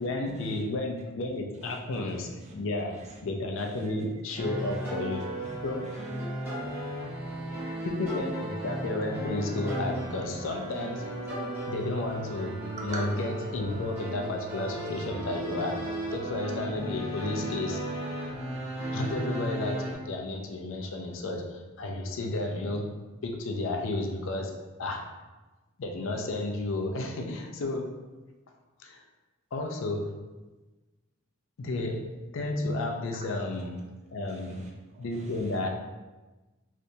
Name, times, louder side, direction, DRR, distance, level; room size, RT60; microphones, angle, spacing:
voice 1, 0.0-5.3 5.6-5.9 7.8-11.3 11.7-17.8 18.9-22.9 23.2-25.1 25.8-28.0 28.8-29.0 29.5-30.2 31.6-33.8 34.1-34.6 35.0-35.7, left 2 dB, 60° left, 3 dB, 0.4 m, -32 dB
sound 1, 4.4-19.9, right 1 dB, 10° right, 1.0 m, -35 dB
voice 2, 6.5-7.9 12.8-13.0 34.3-34.7 35.0-35.1, right 3 dB, 30° right, -1 dB, 0.4 m, -45 dB
3.3 x 2.7 x 2.6 m, 1.2 s
head